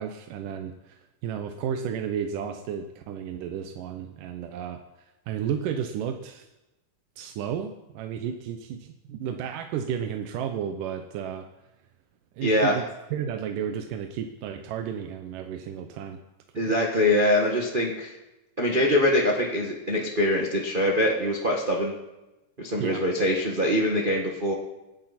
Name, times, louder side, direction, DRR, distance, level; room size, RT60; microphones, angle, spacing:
voice 1, 0.0-4.8 5.3-6.4 7.2-11.5 12.4-16.2 16.6-16.7 22.8-23.1, right 8 dB, 75° right, 6 dB, 2.3 m, -33 dB
voice 2, 12.4-12.8 16.5-18.2 18.6-21.9 22.6-24.5, left 1 dB, 40° right, -1 dB, 0.6 m, -23 dB
27.0 x 10.5 x 4.3 m, 1.0 s
omnidirectional pair, 4.2 m